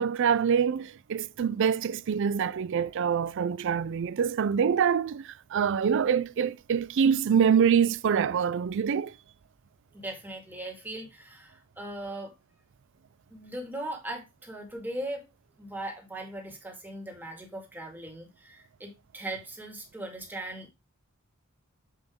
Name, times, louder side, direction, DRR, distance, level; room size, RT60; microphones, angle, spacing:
voice 1, 0.0-5.2 5.5-9.1, right 7 dB, 60° right, 0.4 m, -25 dB
voice 2, 9.9-12.3 13.3-15.2 15.6-20.7, right 1 dB, 10° right, 2.0 m, -39 dB
7.7 x 5.0 x 3.6 m
head